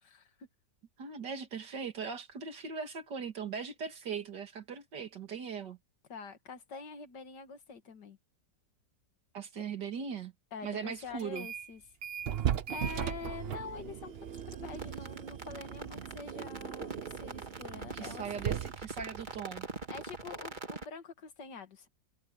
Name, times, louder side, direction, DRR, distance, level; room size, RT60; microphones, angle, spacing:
voice 1, 0.0-0.5 6.1-8.2 10.5-11.8 12.7-18.3 19.9-21.9, left 5 dB, 75° left, 2.3 m, -46 dB
voice 2, 1.0-5.8 9.3-10.3 10.6-11.5 17.9-19.7, right 6 dB, 75° right, 2.8 m, -39 dB
sound 1, 11.2-11.7 12.0-20.5, right 9 dB, 55° right, 0.7 m, -38 dB
sound 2, 14.3-20.9, right 3 dB, 30° right, 1.9 m, -43 dB
omnidirectional pair, 1.9 m